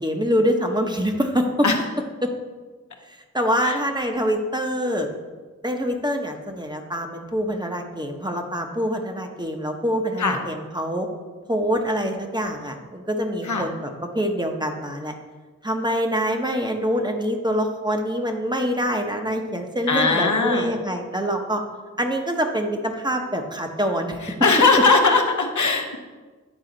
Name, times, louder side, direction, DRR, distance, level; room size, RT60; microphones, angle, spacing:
voice 1, 0.0-1.5 3.1-5.1 5.6-11.1 11.5-13.9 14.1-15.1 15.6-21.6 22.0-24.2, equal, 15° right, 3 dB, 0.9 m, -25 dB
voice 2, 19.9-20.7 24.4-26.0, left 4 dB, 70° left, 3 dB, 0.9 m, -19 dB
9.1 x 4.1 x 3.9 m, 1.4 s
cardioid pair, 40°, 30 cm